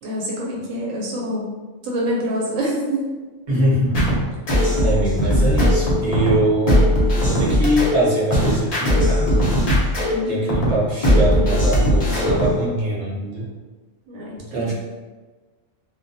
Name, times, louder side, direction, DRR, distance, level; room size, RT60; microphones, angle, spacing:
voice 1, 0.0-1.5 1.8-3.1 10.1-10.5 14.1-14.7, equal, 80° right, -4 dB, 1.0 m, -26 dB
voice 2, 3.5-4.1 4.8-6.9 7.2-9.5 10.3-13.4 14.5-14.7, right 1 dB, 35° right, -7 dB, 0.7 m, -22 dB
sound 1, 3.9-12.6, equal, 45° left, 0.5 m, -19 dB
2.2 x 2.1 x 2.6 m, 1.3 s
omnidirectional pair, 1.3 m